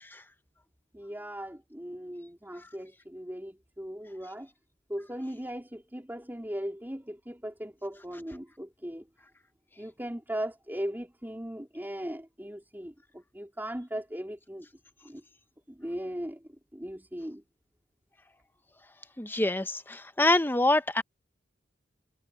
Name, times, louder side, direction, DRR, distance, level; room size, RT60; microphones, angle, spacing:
voice 1, 0.9-4.5 4.9-9.1 9.8-14.7 15.0-15.2 15.7-16.4 16.7-17.4, equal, 10° right, 3.6 m, -38 dB
voice 2, 19.2-21.0, left 2 dB, 10° left, 0.9 m, -25 dB
head